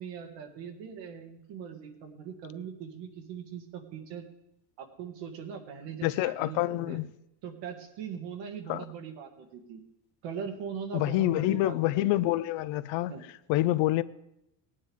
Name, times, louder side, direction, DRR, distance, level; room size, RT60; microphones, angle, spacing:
voice 1, 0.0-4.3 4.8-7.0 7.4-9.8 10.2-12.3 13.1-13.2, right 7 dB, 80° right, 2.0 m, -41 dB
voice 2, 6.0-7.1 8.7-8.8 10.9-13.1 13.5-14.0, left 16 dB, 90° left, 0.7 m, -27 dB
18.5 x 9.6 x 3.6 m
cardioid pair, 140°, 44 cm